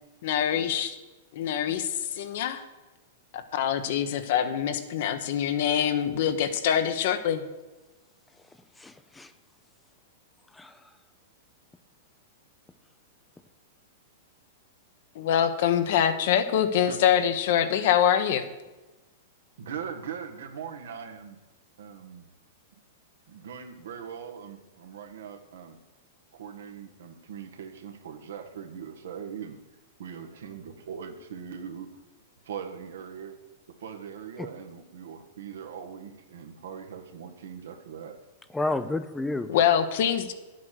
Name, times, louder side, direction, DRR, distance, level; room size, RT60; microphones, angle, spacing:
voice 1, 0.2-1.0 1.3-2.6 3.3-7.4 15.1-18.5 39.5-40.3, left 9 dB, 60° left, 9 dB, 1.2 m, -25 dB
voice 2, 8.8-9.3 10.5-10.9 34.4-34.5 38.5-39.6, left 2 dB, 5° left, 12 dB, 0.6 m, -31 dB
voice 3, 19.6-21.4 21.8-22.3 23.3-25.8 26.3-29.6 30.0-31.9 32.4-33.4 33.8-38.1, right 7 dB, 80° right, 5 dB, 1.7 m, -40 dB
10.0 x 8.5 x 6.5 m, 1.1 s
hypercardioid pair, 135°, 0 cm